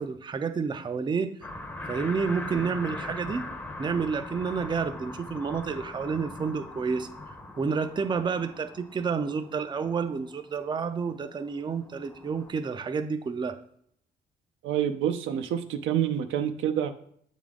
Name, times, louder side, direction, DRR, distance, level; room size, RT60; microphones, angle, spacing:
voice 1, 0.0-1.3 1.9-3.4 3.8-7.1 7.6-13.6, right 5 dB, 25° right, 9 dB, 0.4 m, -30 dB
sound 1, 1.4-12.5, left 2 dB, 10° left, 0.7 m, -41 dB
voice 2, 14.6-16.9, right 10 dB, 80° right, 8 dB, 0.6 m, -27 dB
7.5 x 3.6 x 3.6 m, 0.67 s
cardioid pair, 90°, 20 cm